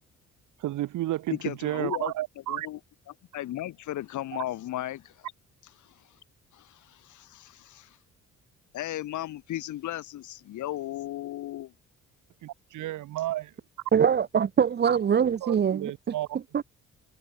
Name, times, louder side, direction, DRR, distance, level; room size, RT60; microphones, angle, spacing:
voice 1, 0.6-2.7 12.4-13.5 15.4-16.4, right 15 dB, 85° right, 4.3 m, -32 dB
voice 2, 1.3-2.1 2.5-2.8 3.3-5.3 5.8-6.2 6.5-8.0 8.7-11.7, left 14 dB, 75° left, 1.6 m, -35 dB
voice 3, 13.9-15.9 16.5-16.6, right 7 dB, 35° right, 0.7 m, -23 dB
cardioid pair, 90°, 30 cm